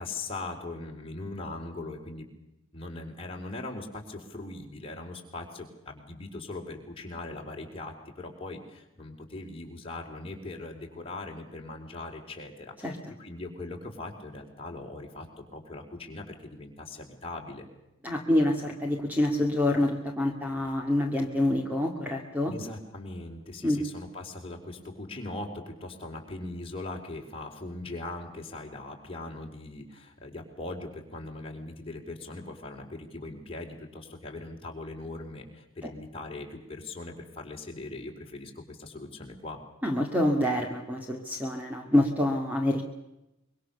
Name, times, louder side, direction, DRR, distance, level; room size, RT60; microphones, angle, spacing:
voice 1, 0.0-2.3 2.7-17.7 22.5-39.6, left 2 dB, 25° left, 0 dB, 4.3 m, -40 dB
voice 2, 18.0-22.5 23.6-23.8 39.8-42.8, left 1 dB, 5° right, 1 dB, 2.2 m, -26 dB
25.0 x 23.5 x 6.9 m, 0.91 s
head